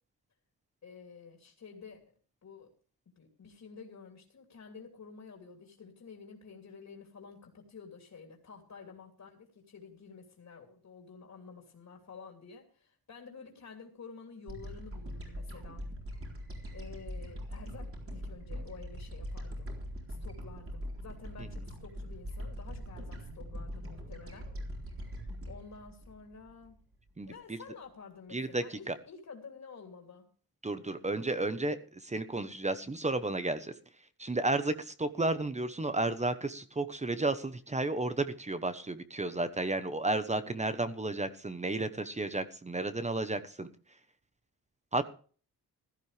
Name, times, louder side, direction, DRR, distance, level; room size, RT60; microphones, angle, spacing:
voice 1, 0.8-2.0 2.4-2.7 3.1-15.8 16.7-19.7 20.1-24.5 25.5-26.8 27.3-30.3, left 5 dB, 50° left, 3 dB, 3.1 m, -50 dB
sound 1, 14.5-27.0, equal, 35° right, 4.1 m, -42 dB
voice 2, 27.2-27.6 28.3-28.9 30.6-33.7 34.2-43.7 44.9-45.0, right 2 dB, 20° right, 11 dB, 1.0 m, -32 dB
16.0 x 14.0 x 3.4 m, 0.41 s
wide cardioid pair, 140°, 37 cm